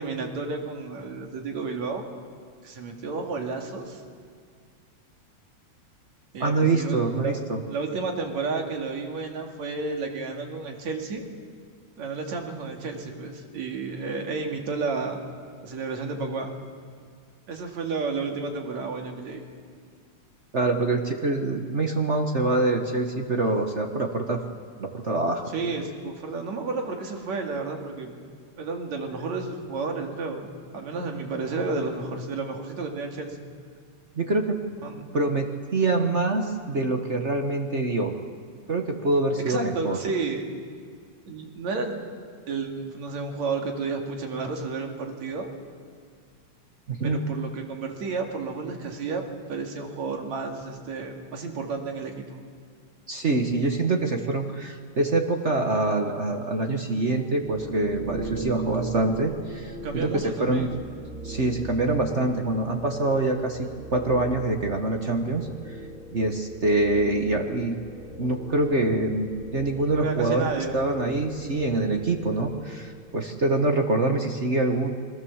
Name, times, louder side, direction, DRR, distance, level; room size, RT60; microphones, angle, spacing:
voice 1, 0.0-2.0 2.6-4.0 6.3-7.4 7.7-11.2 12.0-15.2 15.6-16.5 17.5-19.4 25.5-28.1 28.6-33.4 34.8-35.2 39.5-40.5 41.3-42.0 42.5-45.5 47.0-49.2 49.5-52.4 59.8-60.7 69.9-70.8, right 4 dB, 70° right, 2 dB, 3.6 m, -31 dB
voice 2, 6.4-7.6 20.5-24.4 24.8-25.5 34.2-34.6 35.1-38.1 38.7-40.0 46.9-47.2 53.1-60.7 61.2-65.8 66.1-67.8 68.2-74.9, right 2 dB, 50° right, 4 dB, 0.8 m, -25 dB
sound 1, 57.4-73.2, right 2 dB, 25° right, 3.0 m, -39 dB
28.5 x 22.0 x 7.3 m, 2.1 s
omnidirectional pair, 3.4 m